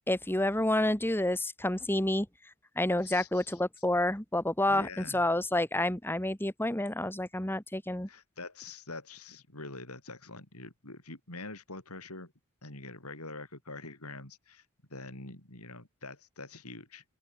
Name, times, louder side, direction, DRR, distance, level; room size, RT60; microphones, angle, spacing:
voice 1, 0.1-2.3 2.8-8.1, left 1 dB, 10° left, 1.9 m, -29 dB
voice 2, 3.0-3.6 4.7-5.2 8.1-12.3 12.6-17.0, left 3 dB, 85° left, 7.3 m, -45 dB
open air
head